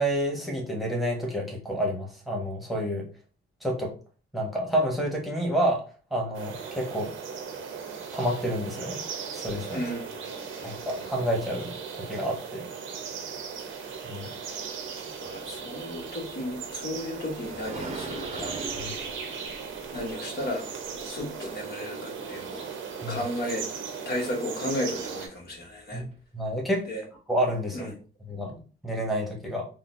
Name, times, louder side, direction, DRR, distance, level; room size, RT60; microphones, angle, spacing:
voice 1, 0.0-3.0 3.6-3.9 4.3-5.8 6.1-7.1 8.1-9.0 9.3-9.8 10.6-12.6 14.0-14.3 18.7-18.9 23.0-23.2 25.9-26.1 26.3-26.8 27.3-27.9 28.2-29.7, equal, ahead, -2 dB, 1.2 m, -29 dB
sound 1, 6.3-25.3, right 6 dB, 85° right, 0.7 m, -37 dB
voice 2, 9.7-11.1 15.2-18.5 19.9-20.7 21.0-22.7 23.1-23.7 24.0-26.0 26.9-27.0 27.7-27.9, left 1 dB, 50° left, 1 dB, 1.1 m, -34 dB
sound 2, 16.3-21.5 25.4-25.5 26.1-26.2, right 3 dB, 35° right, 0.7 m, -41 dB
3.8 x 2.1 x 2.5 m, 0.36 s
cardioid pair, 90°, 20 cm